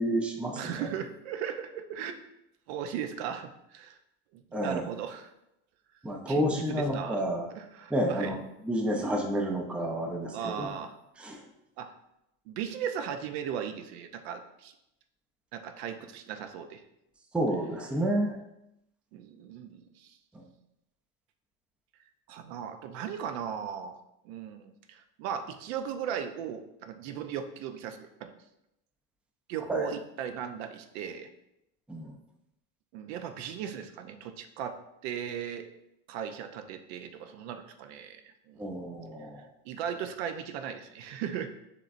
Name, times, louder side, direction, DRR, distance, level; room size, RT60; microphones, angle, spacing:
voice 1, 0.0-0.9 4.5-4.8 6.0-7.5 7.9-8.4 8.7-10.7 11.2-11.4 17.3-18.4 20.3-20.5 29.7-29.9 31.9-32.1 38.6-39.4, equal, 5° right, 2 dB, 0.4 m, -30 dB
voice 2, 0.6-2.2 2.7-4.0 4.3-5.3 6.3-7.2 7.5-8.4 8.9-9.1 10.3-11.0 11.8-11.9 12.5-14.7 15.5-16.8 19.1-20.2 22.3-24.0 24.2-28.3 29.5-31.3 32.9-34.8 35.0-35.7 36.1-38.2 38.5-38.6 39.6-41.5, right 8 dB, 80° right, 8 dB, 0.6 m, -37 dB
6.6 x 3.1 x 2.5 m, 0.85 s
supercardioid pair, 125°, 32 cm